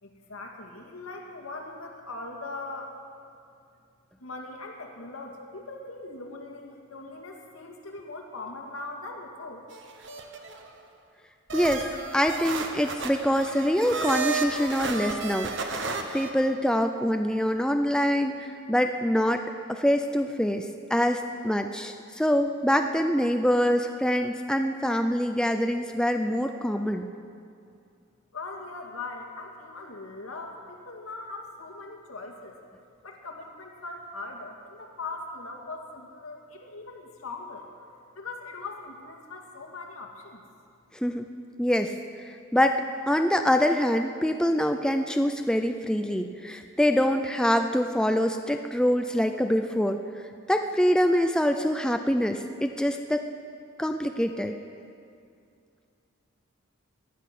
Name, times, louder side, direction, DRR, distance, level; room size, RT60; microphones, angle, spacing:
voice 1, 0.0-3.0 4.2-9.6 28.3-32.6 33.0-40.4, left 3 dB, 80° left, 1 dB, 2.2 m, -40 dB
sound 1, 9.7-10.7 11.5-16.3, right 4 dB, 60° right, 1.2 m, -33 dB
voice 2, 11.5-11.9 12.1-19.4 19.7-27.1 40.9-41.2 41.6-41.9 42.2-50.0 50.5-53.3 53.8-54.5, equal, 5° left, 6 dB, 0.4 m, -25 dB
18.0 x 12.0 x 6.1 m, 2.4 s
head